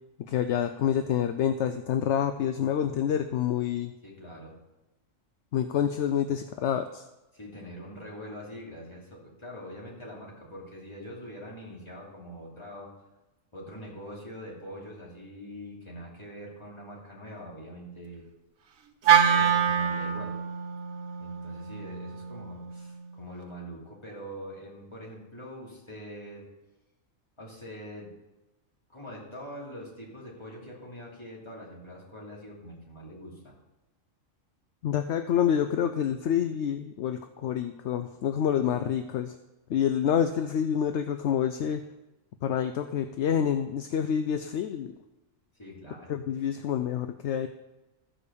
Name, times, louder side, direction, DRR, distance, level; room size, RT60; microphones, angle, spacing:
voice 1, 0.2-3.9 5.5-7.1 34.8-39.4 39.7-41.9 42.4-44.9 46.1-47.5, left 9 dB, 70° left, 9 dB, 0.8 m, -27 dB
voice 2, 4.0-4.6 7.3-12.9 13.5-18.2 19.1-20.4 21.2-26.5 27.4-28.1 28.9-33.5 45.5-46.1, equal, 20° left, -4 dB, 2.8 m, -43 dB
Wind instrument woodwind instrument, 19.0-23.3, right 8 dB, 90° right, 1.3 m, -26 dB
14.0 x 5.0 x 6.8 m, 1.0 s
omnidirectional pair, 1.4 m